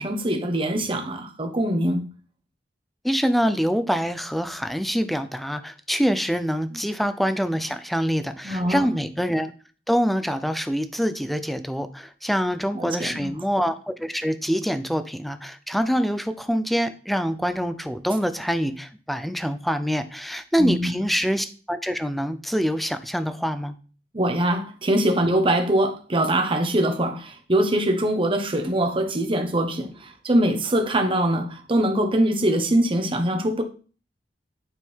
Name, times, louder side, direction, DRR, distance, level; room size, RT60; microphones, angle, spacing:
voice 1, 0.0-2.1 8.4-8.9 12.7-13.3 20.6-20.9 24.1-33.6, right 1 dB, 30° right, 1.0 m, -23 dB
voice 2, 3.0-9.5 9.9-23.7, equal, ahead, 0.5 m, -25 dB
9.1 x 3.7 x 4.6 m
head